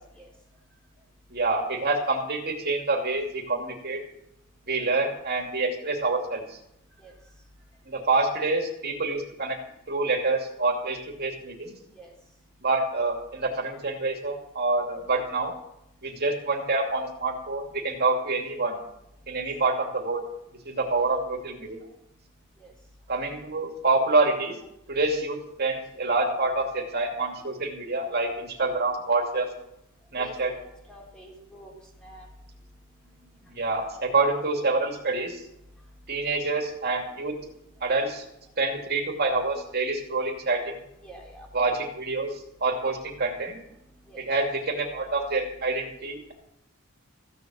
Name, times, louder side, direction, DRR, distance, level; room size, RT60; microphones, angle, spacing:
voice 1, 1.3-4.0 4.7-6.6 7.9-9.6 9.9-11.8 12.6-15.5 16.0-18.8 19.3-20.2 20.7-21.8 23.1-24.6 24.9-29.5 30.1-30.5 33.5-35.4 36.1-37.4 37.8-38.2 38.6-40.7 41.5-43.6 44.2-46.3, right 3 dB, 50° right, 2 dB, 2.6 m, -27 dB
voice 2, 30.2-30.6 30.9-31.7 32.0-32.3 34.6-34.7 41.0-41.5 44.1-44.2, right 1 dB, 5° left, -2 dB, 3.8 m, -46 dB
15.5 x 7.5 x 7.7 m, 0.81 s
head